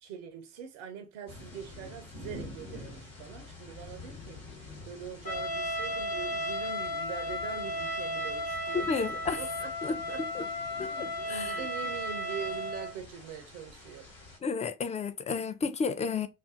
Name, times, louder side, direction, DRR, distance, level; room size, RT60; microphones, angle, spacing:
voice 1, 0.0-8.9 9.4-14.1, right 8 dB, 85° right, 0.5 m, -43 dB
sound 1, 1.3-14.4, left 2 dB, 80° left, 1.3 m, -48 dB
Trumpet, 5.3-12.9, left 1 dB, 60° left, 1.0 m, -34 dB
voice 2, 8.9-9.4 9.8-10.0 10.3-10.5 10.8-11.5 14.4-16.3, left 5 dB, 20° left, 0.3 m, -32 dB
2.4 x 2.2 x 2.4 m
hypercardioid pair, 40°, 35 cm